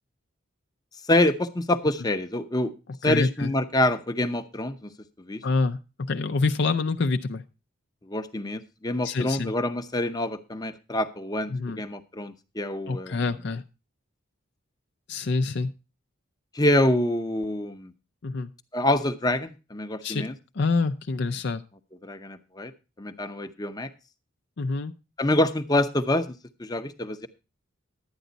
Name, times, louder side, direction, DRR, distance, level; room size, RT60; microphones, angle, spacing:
voice 1, 1.1-2.7 3.0-4.9 5.3-5.4 8.1-13.2 16.5-17.9 18.7-20.3 22.0-22.7 23.0-23.9 25.2-26.3 26.6-27.3, left 1 dB, 20° left, 9 dB, 0.7 m, -26 dB
voice 2, 3.0-3.5 5.4-5.8 6.1-7.4 9.0-9.5 11.5-11.8 12.9-13.6 15.1-15.7 18.2-18.5 20.0-20.3 20.5-21.6 24.6-24.9, left 3 dB, 55° left, 8 dB, 0.5 m, -26 dB
11.5 x 9.1 x 3.9 m, 0.30 s
head